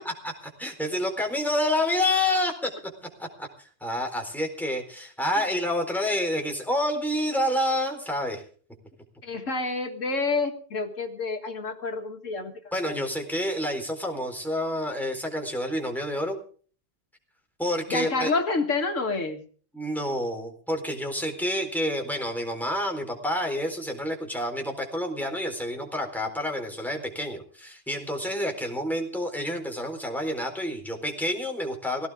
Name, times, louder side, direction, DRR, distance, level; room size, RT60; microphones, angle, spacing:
voice 1, 0.6-2.7 3.2-8.4 12.7-16.4 17.6-18.3 19.7-32.1, left 1 dB, ahead, 2 dB, 4.0 m, -28 dB
voice 2, 9.2-12.5 12.8-13.0 17.9-19.4, left 3 dB, 80° left, 4 dB, 2.1 m, -28 dB
18.5 x 17.5 x 3.6 m, 0.43 s
omnidirectional pair, 1.3 m